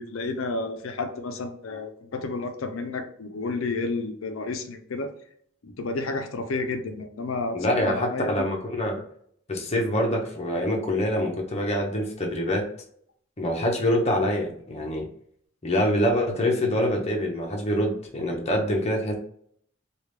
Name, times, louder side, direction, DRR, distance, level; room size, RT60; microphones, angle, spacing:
voice 1, 0.0-5.1 5.6-8.5, left 3 dB, 80° left, 6 dB, 0.6 m, -31 dB
voice 2, 7.5-9.0 9.5-12.7 13.4-15.1 15.6-19.1, left 1 dB, 30° left, 1 dB, 0.8 m, -25 dB
3.3 x 2.4 x 3.2 m, 0.63 s
head